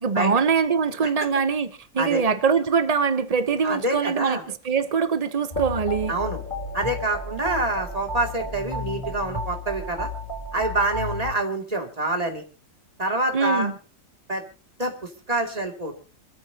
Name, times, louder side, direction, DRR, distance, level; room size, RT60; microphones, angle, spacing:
voice 1, 0.0-4.4 4.6-6.1 13.3-13.7, right 5 dB, 60° right, 0.3 m, -23 dB
voice 2, 3.6-4.4 6.1-6.4 6.7-10.1 10.5-12.4 13.0-13.7 14.3-14.4 14.8-16.0, right 2 dB, 20° right, 2.5 m, -26 dB
sound 1, 5.5-11.3, left 1 dB, 25° left, 2.6 m, -32 dB
26.5 x 13.5 x 2.8 m
omnidirectional pair, 2.0 m